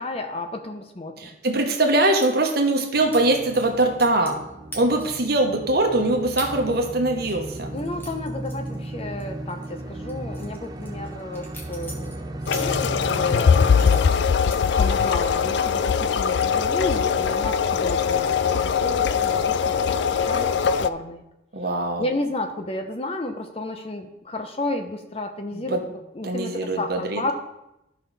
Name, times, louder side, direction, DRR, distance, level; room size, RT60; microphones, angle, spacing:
voice 1, 0.0-1.3 7.7-12.3 12.6-21.2 22.0-25.8 26.1-27.3, left 1 dB, 30° left, 6 dB, 0.8 m, -32 dB
voice 2, 1.2-4.4 4.7-7.7 21.5-22.1 25.5-25.8 26.2-27.2, right 2 dB, 50° right, 3 dB, 1.2 m, -22 dB
sound 1, 2.2-2.3 3.1-3.2 3.5-4.4 4.7-5.2 5.7-5.8 6.4-6.5 6.9-9.2 9.5-9.7 10.1-13.2 13.7-15.3 15.7-16.1 16.4-16.8, equal, 10° left, 1.3 m, -41 dB
sound 2, 3.0-14.0, right 1 dB, 20° right, 0.5 m, -35 dB
sound 3, 12.5-20.9, left 6 dB, 60° left, 0.3 m, -21 dB
12.0 x 5.6 x 4.1 m, 0.90 s
head